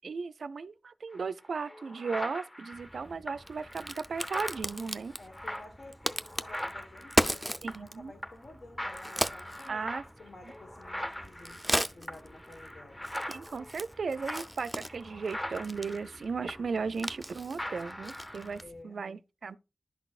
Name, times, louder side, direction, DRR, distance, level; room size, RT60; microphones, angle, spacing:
voice 1, 0.0-5.1 7.6-8.1 9.7-10.0 13.3-19.6, right 5 dB, 90° right, 0.3 m, -36 dB
sound 1, 1.1-1.2 1.6-8.0 8.2-8.5 8.8-17.3 17.6-18.6, equal, 20° left, 0.9 m, -41 dB
Crack, 2.7-18.8, equal, 5° right, 0.4 m, -37 dB
voice 2, 5.2-9.9 10.2-13.0 18.6-19.0, left 2 dB, 75° left, 1.3 m, -51 dB
11.5 x 4.0 x 2.4 m
wide cardioid pair, 80°, 0 cm